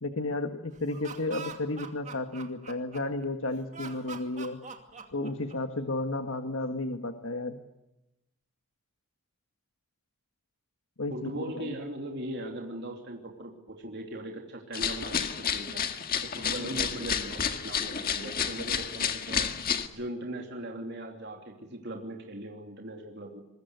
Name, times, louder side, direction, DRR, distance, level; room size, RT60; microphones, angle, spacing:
voice 1, 0.0-4.6 5.1-7.6 11.0-11.8, left 2 dB, 70° left, 7 dB, 1.6 m, -33 dB
Laughter, 0.7-3.2 3.7-5.8, right 5 dB, 35° right, 2.5 m, -43 dB
voice 2, 11.1-15.8 16.2-19.5 19.9-23.4, right 1 dB, 50° right, 1 dB, 3.0 m, -39 dB
sound 1, 14.7-19.9, left 7 dB, 40° left, 1.8 m, -31 dB
25.5 x 21.5 x 8.1 m, 0.95 s
head